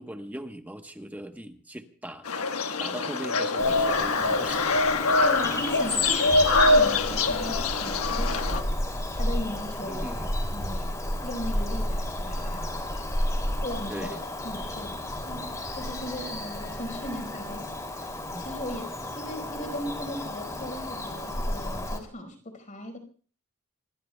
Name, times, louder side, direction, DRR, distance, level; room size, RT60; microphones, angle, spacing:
voice 1, 0.0-2.3 2.8-4.8 9.9-10.3 13.9-14.2 18.3-18.5, right 1 dB, 10° right, 6 dB, 1.1 m, -39 dB
sound 1, 2.3-8.6, left 3 dB, 85° left, 1.3 m, -24 dB
Bird vocalization bird call bird song, 3.6-22.0, left 1 dB, 15° left, 2.9 m, -32 dB
voice 2, 5.2-10.1 10.5-12.7 13.6-14.1 14.4-23.0, left 1 dB, 35° left, 5 dB, 4.9 m, -38 dB
26.5 x 21.5 x 2.3 m, 0.41 s
head